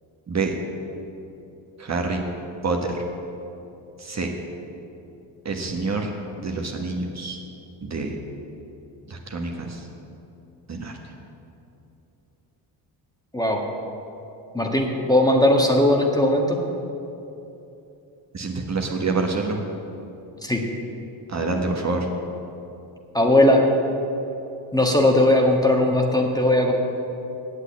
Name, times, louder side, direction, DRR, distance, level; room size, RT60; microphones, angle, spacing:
voice 1, 1.8-2.2 2.6-3.0 4.0-4.3 5.4-6.1 6.4-7.4 7.8-8.2 9.1-9.9 10.7-11.0 18.3-19.6 21.3-22.1, right 3 dB, 35° right, 1 dB, 1.4 m, -27 dB
voice 2, 14.5-16.6 20.4-20.6 23.1-23.6 24.7-26.7, left 1 dB, 10° left, 1 dB, 1.5 m, -18 dB
8.3 x 8.1 x 8.6 m, 2.9 s
supercardioid pair, 70°, 46 cm